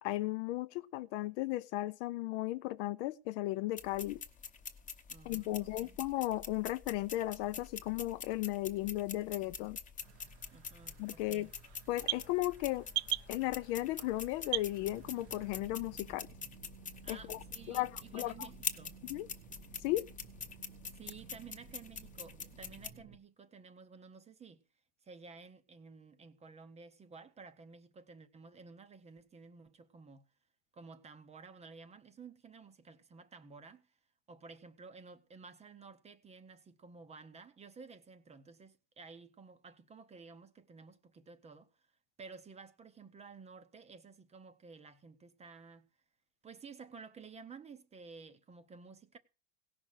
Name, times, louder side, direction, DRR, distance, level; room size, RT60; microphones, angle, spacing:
voice 1, 0.0-4.2 5.2-9.8 11.0-11.5 11.9-12.9 13.3-16.3 17.1-17.4 17.7-18.5 19.1-19.3 19.8-20.1, left 17 dB, 50° left, 0.5 m, -35 dB
sound 1, 3.8-22.9, left 6 dB, 15° left, 0.9 m, -46 dB
voice 2, 5.1-6.0 10.5-11.5 17.0-18.9 20.9-24.6 25.0-30.2 30.7-33.9 34.3-41.7 42.2-45.9 46.4-49.2, right 4 dB, 15° right, 0.7 m, -53 dB
sound 2, 10.0-15.5, right 17 dB, 55° right, 0.6 m, -42 dB
sound 3, 14.8-23.2, right 7 dB, 90° right, 1.9 m, -56 dB
17.0 x 6.0 x 6.3 m
supercardioid pair, 145°, 46 cm